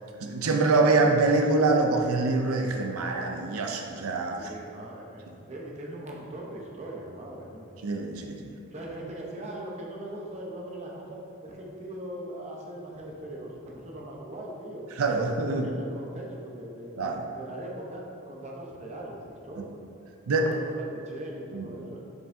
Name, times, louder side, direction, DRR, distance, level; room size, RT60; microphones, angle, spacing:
voice 1, 0.2-4.4 7.8-8.5 15.0-15.7 17.0-17.2 19.6-19.7 20.3-20.5 21.5-21.7, right 3 dB, 85° right, 3 dB, 0.5 m, -25 dB
voice 2, 4.3-7.8 8.7-14.9 15.4-17.0 17.3-19.8 20.3-22.0, right 1 dB, 30° right, -2 dB, 0.8 m, -40 dB
7.7 x 5.4 x 2.7 m, 2.5 s
head